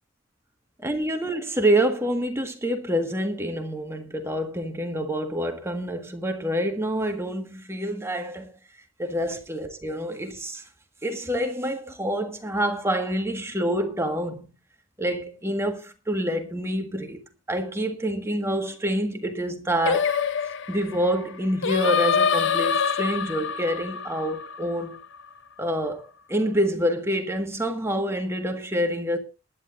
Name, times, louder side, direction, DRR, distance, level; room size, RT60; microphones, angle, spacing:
voice 1, 0.8-8.5 9.0-10.6 11.0-14.5 15.0-17.2 17.5-20.1 20.7-25.0 25.6-29.2, equal, 15° right, 1.6 m, -27 dB
Singing, 19.9-25.2, left 6 dB, 60° left, 0.6 m, -25 dB
19.5 x 11.0 x 2.6 m
head